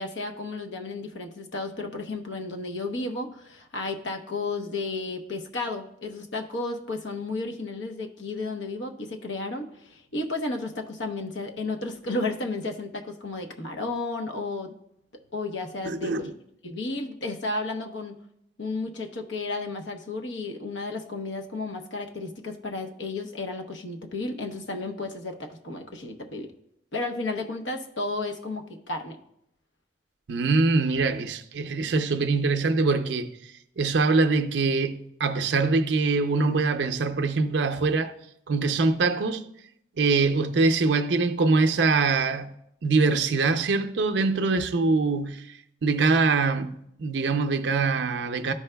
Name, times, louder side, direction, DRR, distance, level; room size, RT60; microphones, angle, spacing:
voice 1, 0.0-14.7 15.3-16.3 16.6-18.2 18.6-26.5 26.9-29.2, left 2 dB, 85° left, 0.9 m, -33 dB
voice 2, 15.8-16.3 30.3-33.3 33.8-38.1 38.5-39.4 40.0-42.5 42.8-45.4 45.8-48.5, right 3 dB, 70° right, 0.5 m, -23 dB
12.5 x 4.7 x 2.2 m
head